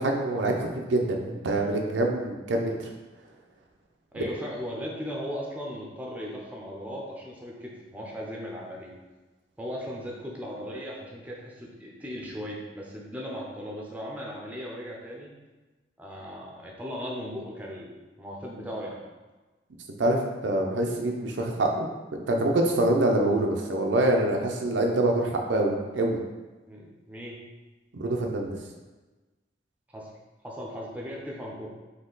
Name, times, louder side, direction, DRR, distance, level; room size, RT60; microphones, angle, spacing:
voice 1, 0.0-2.9 20.0-26.2 27.9-28.6, right 1 dB, 85° right, 1 dB, 0.6 m, -25 dB
voice 2, 4.1-8.9 9.6-15.3 16.0-19.0 26.7-27.4 29.9-30.1 30.4-31.7, equal, 10° right, -3 dB, 0.6 m, -37 dB
4.2 x 2.8 x 3.9 m, 1.2 s
head